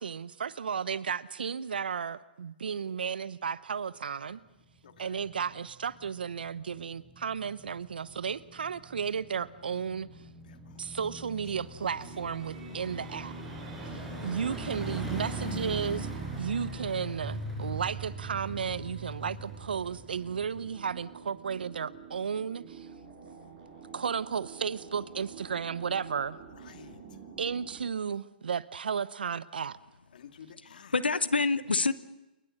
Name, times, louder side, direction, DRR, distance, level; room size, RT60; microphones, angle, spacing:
voice 1, 0.0-4.4 5.0-10.1 10.8-13.3 13.8-16.1 16.4-22.9 23.9-26.4 27.4-29.8, right 6 dB, 75° right, 18 dB, 0.9 m, -34 dB
sound 1, 4.5-21.0 21.4-21.5, right 2 dB, 5° right, 7.5 m, -41 dB
voice 2, 4.8-5.2 10.5-11.0 13.9-14.3 26.6-27.0 30.1-30.9, left 7 dB, 60° left, 6 dB, 2.4 m, -53 dB
sound 2, 11.9-27.9, right 5 dB, 45° right, 7.7 m, -49 dB
voice 3, 30.6-31.9, left 3 dB, 90° left, 15 dB, 0.9 m, -27 dB
29.0 x 22.0 x 6.6 m, 0.96 s
hypercardioid pair, 130°, 5 cm